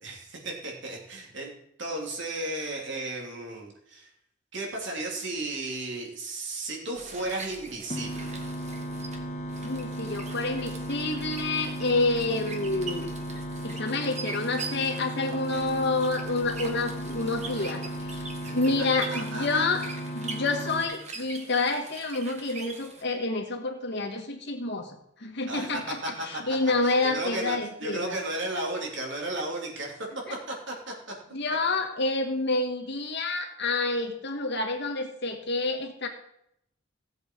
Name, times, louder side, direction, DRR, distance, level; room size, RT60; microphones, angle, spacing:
voice 1, 0.0-4.1 4.5-8.5 18.4-18.6 18.9-19.7 25.5-26.4 26.8-30.9, right 2 dB, 65° right, 0 dB, 3.1 m, -34 dB
sound 1, 7.0-23.0, right 4 dB, 35° right, 1.6 m, -43 dB
sound 2, 7.9-20.8, right 1 dB, 35° left, 2.2 m, -35 dB
voice 2, 9.6-13.1 13.6-18.3 18.5-19.8 20.1-24.9 25.2-26.0 26.3-28.2 30.3-30.4 31.3-36.1, left 3 dB, 60° left, 3 dB, 1.9 m, -28 dB
16.5 x 7.8 x 4.7 m, 0.76 s
head